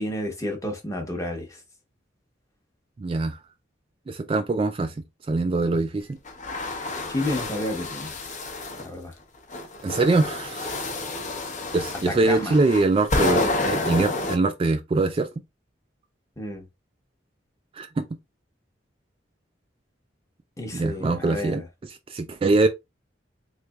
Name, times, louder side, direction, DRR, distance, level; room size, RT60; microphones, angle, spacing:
voice 1, 0.0-1.6 7.1-8.1 8.8-9.1 12.1-12.6 16.4-16.6 20.6-21.6, left 1 dB, 15° left, 0.9 m, -30 dB
voice 2, 3.0-3.4 4.1-4.9 5.3-6.2 9.8-10.9 11.7-15.3 17.8-18.1 20.7-21.6 21.9-22.7, right 3 dB, 30° right, 0.3 m, -23 dB
sound 1, 6.3-8.9 9.5-14.4, left 2 dB, 40° left, 0.8 m, -29 dB
3.9 x 3.2 x 2.3 m
head